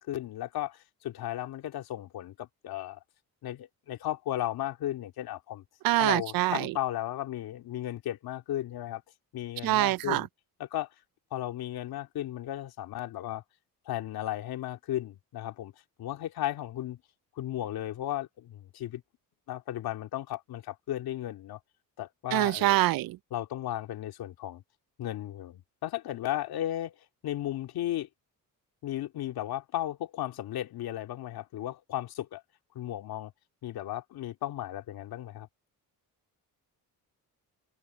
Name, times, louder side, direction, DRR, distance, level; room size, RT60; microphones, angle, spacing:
voice 1, 0.0-3.0 3.4-5.6 6.0-9.0 9.3-10.3 10.6-10.9 11.3-13.4 13.9-15.7 16.0-17.0 17.3-19.0 19.5-21.6 22.0-22.8 23.3-24.6 25.0-27.0 27.2-28.1 28.8-32.4 32.7-33.3 33.6-35.5, left 13 dB, 80° left, 2.4 m, -35 dB
voice 2, 5.8-6.7 9.6-10.2 22.3-23.1, right 16 dB, 70° right, 0.5 m, -25 dB
cardioid pair, 90°, 36 cm